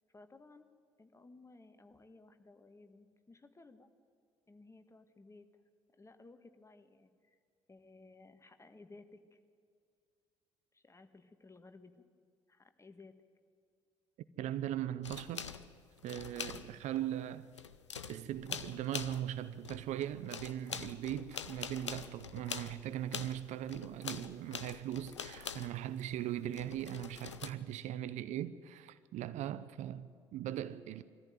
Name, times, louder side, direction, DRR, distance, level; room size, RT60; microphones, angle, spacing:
voice 1, 0.1-0.7 1.0-3.9 4.5-5.5 6.0-7.4 7.7-9.4 10.7-12.0 12.5-13.1 28.1-28.2, left 3 dB, 20° left, 1.7 m, -58 dB
voice 2, 14.4-15.5 16.0-17.5 18.1-31.0, right 12 dB, 55° right, 0.7 m, -39 dB
sound 1, 15.0-17.0 17.3-19.4 19.6-26.0 26.5-27.5, left 7 dB, 85° left, 0.6 m, -44 dB
22.0 x 14.5 x 9.3 m
figure-of-eight pair, 50°, 15 cm